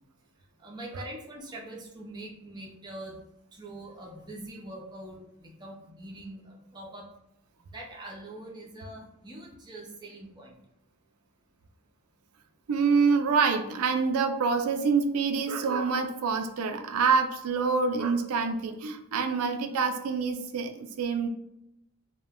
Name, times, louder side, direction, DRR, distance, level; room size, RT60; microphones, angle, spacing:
voice 1, 0.6-3.2 3.5-7.1 7.7-10.5, right 1 dB, 20° right, -2 dB, 0.5 m, -43 dB
voice 2, 12.7-21.3, right 5 dB, 70° right, 6 dB, 0.4 m, -26 dB
2.2 x 2.1 x 3.5 m, 0.82 s
head